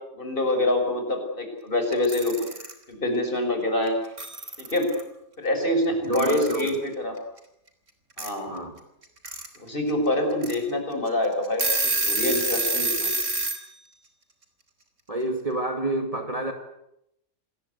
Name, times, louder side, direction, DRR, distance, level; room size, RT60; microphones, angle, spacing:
voice 1, 0.1-2.4 2.9-4.0 4.6-4.9 5.4-7.1 8.2-8.6 9.6-13.1, left 1 dB, 35° left, 4 dB, 6.2 m, -26 dB
Alarm / Clock, 1.9-2.7 3.9-4.0 4.2-5.0 6.1-6.8 8.2-8.3 9.0-9.5 9.9-10.0 10.4-10.5 11.1-11.2 11.4-13.6, right 2 dB, 55° right, 3.7 m, -27 dB
voice 2, 6.1-6.8 8.5-8.8 15.1-16.5, right 1 dB, 25° right, 4 dB, 2.3 m, -28 dB
27.5 x 20.5 x 8.2 m, 0.80 s
omnidirectional pair, 1.5 m